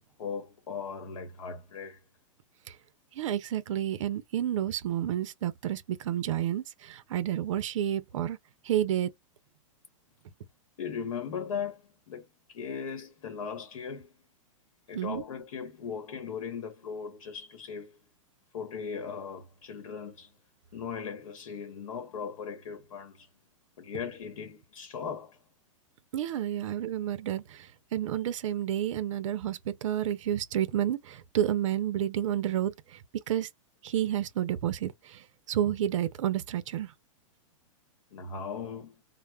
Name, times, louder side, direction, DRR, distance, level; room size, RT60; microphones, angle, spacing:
voice 1, 0.2-2.0 10.8-14.1 14.9-18.0 18.5-20.3 20.7-23.3 23.8-25.4 38.1-39.0, left 6 dB, 75° left, 0.9 m, -38 dB
voice 2, 3.2-8.4 8.6-9.1 14.9-15.2 26.1-32.7 33.3-33.5 33.8-36.9, right 11 dB, 65° right, 0.5 m, -30 dB
2.1 x 2.0 x 3.2 m
supercardioid pair, 170°, 17 cm